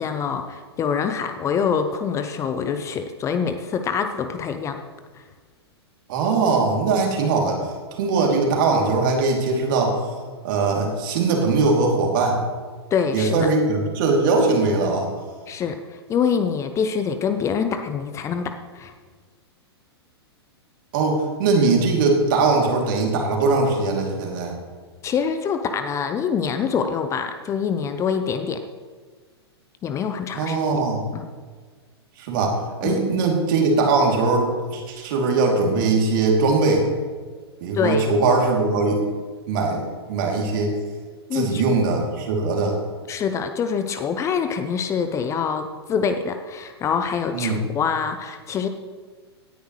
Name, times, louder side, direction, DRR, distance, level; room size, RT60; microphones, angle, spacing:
voice 1, 0.0-4.8 5.1-5.2 12.9-13.5 15.5-18.9 25.0-28.6 29.8-30.8 31.1-31.3 32.8-33.0 37.7-38.1 41.3-41.6 43.1-48.7, left 6 dB, 20° left, 8 dB, 0.6 m, -25 dB
voice 2, 6.1-7.7 8.0-10.0 10.4-12.4 13.1-15.1 20.9-24.6 30.3-31.0 32.2-36.9 37.6-39.0 39.5-39.8 40.1-40.7 41.3-42.8 47.3-47.6, right 3 dB, 50° right, 0 dB, 2.9 m, -21 dB
17.5 x 10.0 x 3.2 m, 1.5 s
figure-of-eight pair, 110°, 14 cm